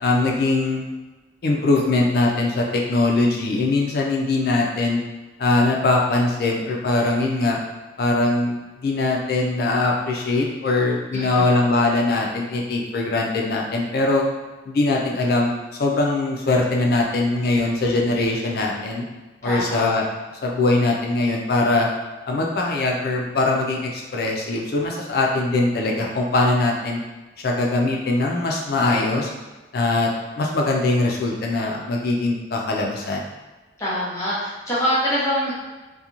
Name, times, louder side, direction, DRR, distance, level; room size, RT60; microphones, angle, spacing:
voice 1, 0.0-0.8 1.4-5.0 5.4-7.6 8.0-14.2 14.7-15.5 15.8-19.0 19.4-20.1 20.4-21.9 22.3-27.0 27.4-29.3 29.7-30.1 30.4-33.3, left 2 dB, 55° left, -1 dB, 0.3 m, -21 dB
voice 2, 11.1-11.4 19.4-19.8 33.8-35.5, equal, 15° left, -9 dB, 0.9 m, -24 dB
2.8 x 2.2 x 2.4 m, 1.2 s
head